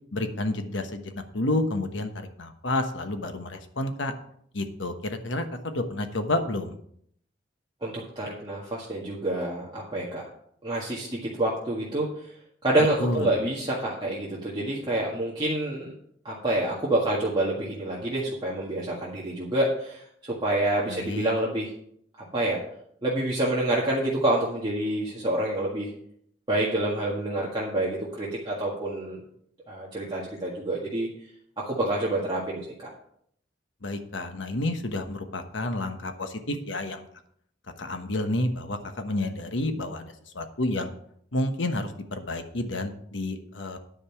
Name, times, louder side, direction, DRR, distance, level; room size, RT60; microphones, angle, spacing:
voice 1, 0.1-4.1 4.5-6.7 13.0-13.3 20.9-21.3 33.8-37.1 37.8-40.9 41.3-43.8, left 2 dB, 75° left, 7 dB, 1.2 m, -30 dB
voice 2, 7.8-10.2 10.6-12.1 12.6-15.9 16.3-21.7 22.3-22.6 23.0-25.9 26.5-29.2 29.7-31.1 31.7-32.9, right 1 dB, 25° right, -5 dB, 1.8 m, -27 dB
10.0 x 5.4 x 7.0 m, 0.68 s
head